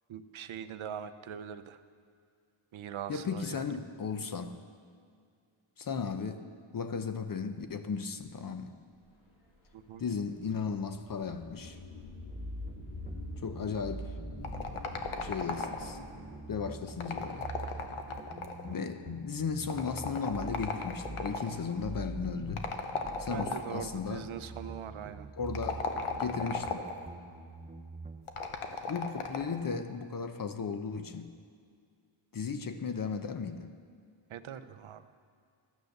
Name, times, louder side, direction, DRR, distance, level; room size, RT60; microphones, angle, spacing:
voice 1, 0.1-1.8 2.7-3.7 9.7-10.0 23.3-25.3 34.3-35.0, right 9 dB, 70° right, 11 dB, 0.7 m, -42 dB
voice 2, 3.1-4.6 5.8-6.5 6.7-8.7 10.0-11.8 13.4-14.1 15.2-16.0 16.5-17.5 18.6-22.6 23.2-24.2 25.4-25.9 26.2-26.9 28.9-31.3 32.3-33.7, left 5 dB, 45° left, 8 dB, 0.6 m, -35 dB
sound 1, 9.1-18.1, left 2 dB, 65° left, 3.5 m, -46 dB
sound 2, 12.3-28.3, right 3 dB, 15° right, 0.5 m, -45 dB
sound 3, 14.4-16.1 16.9-18.7 19.7-21.5 22.6-23.9 25.4-27.0 28.3-29.6, left 5 dB, 85° left, 1.1 m, -36 dB
13.0 x 9.3 x 6.5 m, 2.2 s
wide cardioid pair, 140°, 49 cm